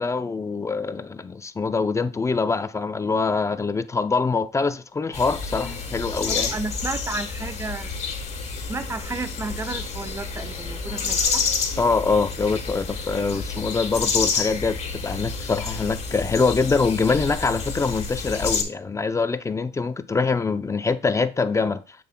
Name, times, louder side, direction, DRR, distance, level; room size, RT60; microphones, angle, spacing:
voice 1, 0.0-6.6 11.8-21.8, left 4 dB, 15° left, 0.4 m, -24 dB
sound 1, 5.1-18.6, left 5 dB, 40° left, 1.6 m, -29 dB
voice 2, 6.3-7.9 8.7-11.5, right 3 dB, 15° right, 0.7 m, -32 dB
7.7 x 6.8 x 2.2 m
cardioid pair, 110°, 17 cm